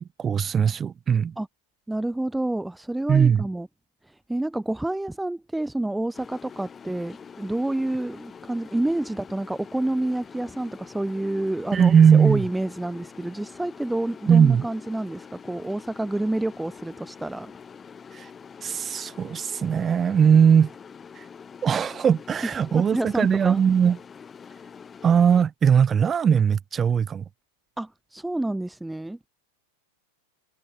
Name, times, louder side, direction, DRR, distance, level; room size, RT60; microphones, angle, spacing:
voice 1, 0.0-1.3 3.1-3.5 11.7-12.4 14.3-14.7 18.1-18.3 18.6-20.7 21.2-21.3 21.6-24.0 25.0-27.2, right 7 dB, 20° right, 1.2 m, -19 dB
voice 2, 1.9-3.7 4.0-17.5 22.7-23.6 27.8-29.3, right 1 dB, 5° right, 5.6 m, -29 dB
sound 1, 6.1-25.4, left 6 dB, 20° left, 5.8 m, -45 dB
open air
figure-of-eight pair, 90°, 0 cm